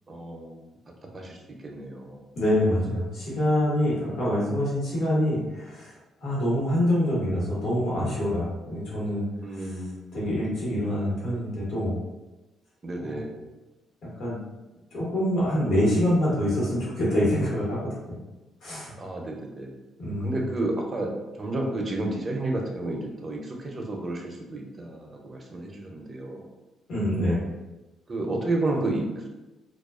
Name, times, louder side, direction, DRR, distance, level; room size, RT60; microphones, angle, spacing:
voice 1, 0.1-0.6 1.1-1.4 1.6-2.2 9.4-10.2 12.8-13.4 19.0-19.8 20.2-21.1 21.4-26.5 28.1-29.3, right 2 dB, 35° right, 0 dB, 0.5 m, -31 dB
voice 2, 2.3-5.9 6.2-9.2 9.5-9.7 10.1-12.0 13.0-13.2 14.2-14.4 14.9-17.8 18.6-18.9 20.0-20.4 26.9-27.4, equal, 65° left, -7 dB, 1.1 m, -25 dB
2.3 x 2.2 x 2.3 m, 1.1 s
cardioid pair, 90°, 0 cm